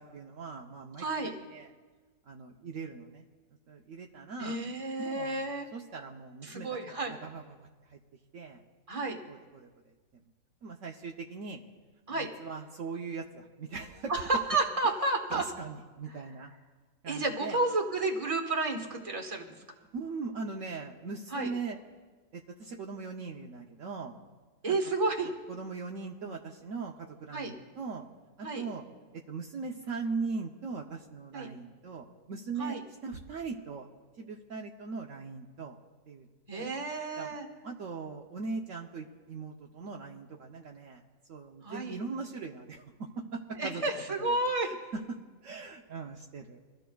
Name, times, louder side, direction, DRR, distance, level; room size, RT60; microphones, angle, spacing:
voice 1, 0.0-1.7 2.3-3.3 3.7-4.6 5.0-5.4 5.7-8.0 8.3-8.6 9.0-10.2 10.6-11.6 12.1-14.1 15.3-16.5 17.0-17.6 19.9-21.8 22.3-24.2 24.7-24.8 25.2-28.1 28.4-28.8 29.1-32.8 33.0-33.9 34.2-35.8 36.1-36.7 37.2-37.4 37.6-41.0 41.3-43.8 44.2-44.8 45.1-45.2 45.4-46.6, right 4 dB, 65° right, 0 dB, 1.1 m, -40 dB
voice 2, 1.0-1.3 4.4-5.7 6.4-7.1 8.9-9.2 12.1-12.3 14.1-14.2 14.5-15.4 17.1-19.6 21.3-21.5 24.6-25.3 27.3-27.5 28.4-28.6 31.3-31.5 32.6-32.8 36.5-37.4 41.6-42.0 43.6-44.7, right 2 dB, 25° right, 2 dB, 1.4 m, -31 dB
24.5 x 14.0 x 2.3 m, 1.4 s
omnidirectional pair, 1.5 m